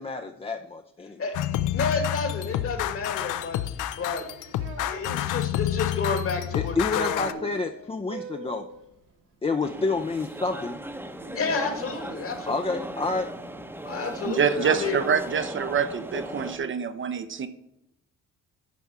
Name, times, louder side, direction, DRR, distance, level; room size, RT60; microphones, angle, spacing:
voice 1, 0.0-1.2 6.5-8.7 9.4-10.8 12.5-13.3, left 3 dB, 20° left, 5 dB, 0.5 m, -29 dB
sound 1, 1.3-7.3, left 13 dB, 85° left, 0.5 m, -29 dB
voice 2, 1.7-4.2 4.8-7.4 11.3-12.9 13.8-15.0, left 4 dB, 50° left, 5 dB, 1.8 m, -31 dB
sound 2, 3.7-5.0 7.2-8.8, right 4 dB, 90° right, 1.8 m, -42 dB
sound 3, 9.6-16.6, right 1 dB, 5° right, 0.8 m, -38 dB
voice 3, 14.2-17.5, right 6 dB, 40° right, 10 dB, 0.6 m, -26 dB
10.5 x 3.5 x 5.6 m, 0.85 s
cardioid pair, 90°, 30 cm